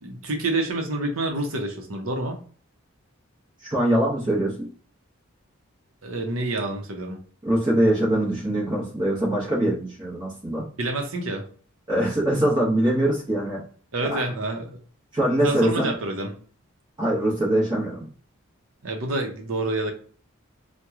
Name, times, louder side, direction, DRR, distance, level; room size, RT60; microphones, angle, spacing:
voice 1, 0.0-2.4 6.0-7.2 10.8-11.4 13.9-14.8 15.4-16.3 18.8-19.9, right 2 dB, 75° right, 4 dB, 0.7 m, -28 dB
voice 2, 3.6-4.7 7.4-10.6 11.9-13.6 14.1-14.2 15.1-15.9 17.0-18.1, right 1 dB, 20° right, -6 dB, 0.9 m, -23 dB
3.0 x 2.2 x 3.5 m, 0.42 s
head